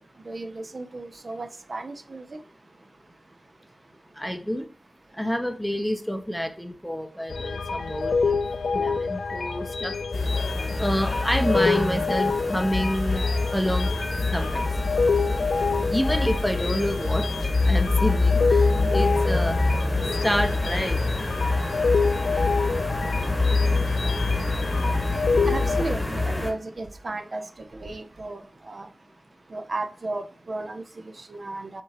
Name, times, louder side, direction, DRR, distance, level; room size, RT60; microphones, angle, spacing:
voice 1, 0.2-2.4 25.5-28.9 29.5-31.8, right 2 dB, 50° right, 7 dB, 0.4 m, -34 dB
voice 2, 4.2-4.7 5.2-8.4 8.7-10.0 10.8-13.9 14.3-14.7 15.9-17.3 17.6-19.6 20.2-21.0, equal, ahead, 6 dB, 0.5 m, -28 dB
sound 1, 7.3-25.8, left 4 dB, 85° left, 0.4 m, -27 dB
sound 2, 10.1-26.5, left 2 dB, 20° left, 1.0 m, -25 dB
6.5 x 2.9 x 2.8 m, 0.40 s
wide cardioid pair, 115°, 0 cm